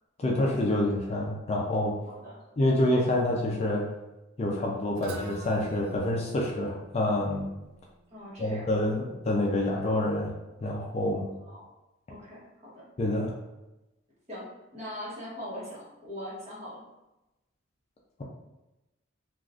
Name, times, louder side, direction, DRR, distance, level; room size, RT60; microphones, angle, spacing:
voice 1, 0.2-2.0 2.6-3.9 4.4-7.4 8.4-10.3 10.6-11.3 13.0-13.3, left 1 dB, 30° left, -2 dB, 0.4 m, -27 dB
voice 2, 2.1-2.5 8.1-8.6 11.5-11.7 12.1-12.8 14.3-14.5 14.7-16.8, equal, 30° right, -7 dB, 1.1 m, -41 dB
Guitar, 5.0-8.7, right 3 dB, 80° right, 0.4 m, -46 dB
3.4 x 2.4 x 2.4 m, 0.98 s
head